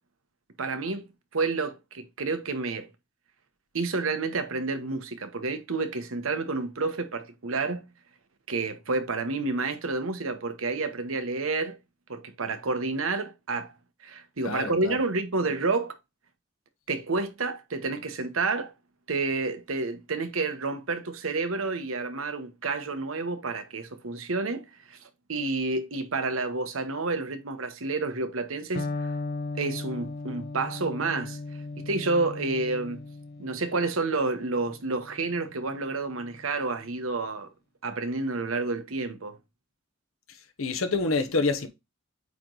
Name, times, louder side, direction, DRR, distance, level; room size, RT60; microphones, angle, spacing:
voice 1, 0.6-1.1 1.3-2.9 3.7-7.8 8.5-11.8 12.1-13.7 14.0-15.9 16.9-18.7 19.1-25.0 25.3-28.9 29.6-31.4 31.9-33.0 33.4-37.5 37.8-39.4, right 3 dB, 80° right, 1.0 m, -29 dB
voice 2, 14.4-15.0 40.6-41.7, left 3 dB, 80° left, 1.0 m, -27 dB
Electric guitar, 28.8-36.6, left 3 dB, 50° left, 0.8 m, -37 dB
8.4 x 3.1 x 3.9 m
head